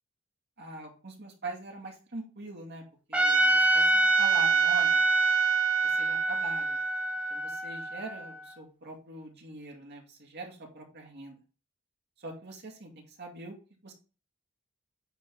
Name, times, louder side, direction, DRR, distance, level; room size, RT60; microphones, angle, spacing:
voice 1, 0.6-2.8 3.1-5.0 5.8-6.8 7.3-11.4 12.2-12.9 13.2-13.6 13.8-13.9, right 2 dB, 55° right, 1 dB, 2.3 m, -42 dB
Trumpet, 3.1-8.3, right 3 dB, 5° right, 1.2 m, -25 dB
9.2 x 4.0 x 3.9 m, 0.35 s
head